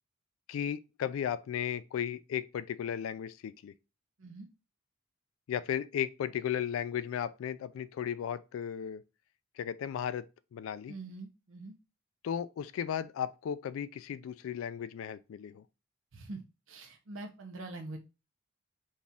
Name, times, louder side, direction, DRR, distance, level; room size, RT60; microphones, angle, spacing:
voice 1, 0.5-3.7 5.5-9.0 9.6-10.3 10.5-10.9 12.2-15.6, left 9 dB, 80° left, 0.3 m, -35 dB
voice 2, 10.9-11.7 16.1-16.4 16.7-18.0, right 2 dB, 70° right, 0.7 m, -44 dB
4.1 x 2.4 x 3.5 m
head